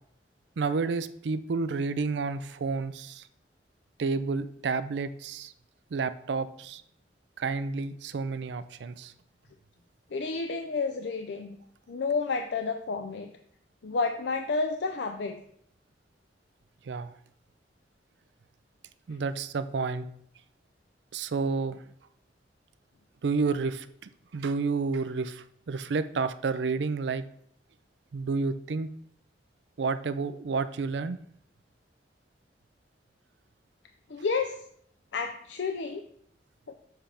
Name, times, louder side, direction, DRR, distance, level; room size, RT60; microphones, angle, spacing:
voice 1, 0.6-3.3 4.0-5.5 5.9-6.8 7.4-9.1 16.9-17.1 19.1-20.1 21.1-21.8 23.2-23.9 24.3-27.2 28.1-28.9 29.8-31.2, right 4 dB, 85° right, 13 dB, 0.4 m, -30 dB
voice 2, 10.1-11.6 11.9-13.3 13.8-15.4 34.1-34.6 35.1-36.0 36.7-36.8, left 4 dB, 85° left, 6 dB, 0.5 m, -30 dB
7.3 x 3.4 x 5.6 m, 0.66 s
head